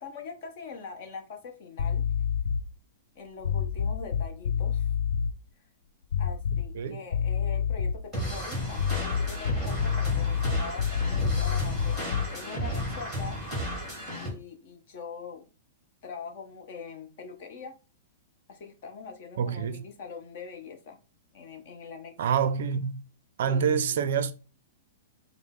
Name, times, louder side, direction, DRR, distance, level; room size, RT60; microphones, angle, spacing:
voice 1, 0.0-2.0 3.1-4.9 6.2-12.0 12.3-13.4 14.2-15.4 16.0-17.7 18.5-21.0 21.3-22.1 23.5-24.0, left 5 dB, 40° left, 0.8 m, -42 dB
sound 1, 1.8-2.7 3.4-5.3 6.1-6.8 7.1-8.1 8.7-12.4, left 7 dB, 75° left, 0.3 m, -28 dB
sound 2, 8.1-14.3, equal, 5° left, 1.7 m, -33 dB
voice 2, 19.4-19.8 22.2-23.0 23.4-24.3, right 7 dB, 55° right, 0.4 m, -26 dB
5.1 x 2.0 x 3.6 m
supercardioid pair, 175°, 0 cm